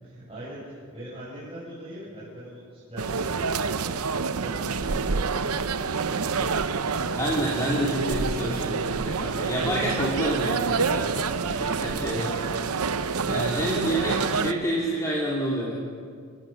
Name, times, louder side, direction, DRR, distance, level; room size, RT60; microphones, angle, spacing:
voice 1, 0.0-4.0 4.4-7.2 12.1-12.5 13.6-14.1, right 1 dB, 25° right, -10 dB, 6.8 m, -40 dB
sound 1, 3.0-14.5, right 5 dB, 85° right, 0.8 m, -27 dB
voice 2, 7.2-12.3 13.2-14.2 14.4-15.7, right 1 dB, 15° left, -5 dB, 2.8 m, -28 dB
29.5 x 15.0 x 6.5 m, 2.1 s
head